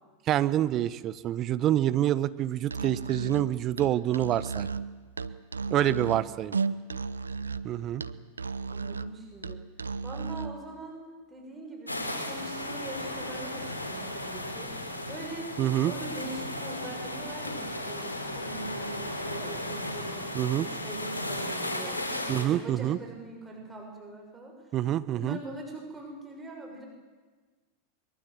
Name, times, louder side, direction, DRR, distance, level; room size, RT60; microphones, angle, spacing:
voice 1, 0.3-4.7 5.7-6.6 7.6-8.0 15.6-15.9 20.3-20.7 22.3-23.0 24.7-25.4, right 12 dB, 35° right, 15 dB, 1.0 m, -27 dB
Musical instrument, 2.6-10.6, right 4 dB, 80° right, 0.8 m, -34 dB
voice 2, 8.7-9.6 10.0-11.0 11.3-15.5 15.8-24.8 25.2-26.8, right 2 dB, 15° right, 1 dB, 6.3 m, -42 dB
sound 1, 11.9-22.4, left 1 dB, 85° left, 3.3 m, -35 dB
23.0 x 22.0 x 7.7 m, 1.4 s
figure-of-eight pair, 90°, 0 cm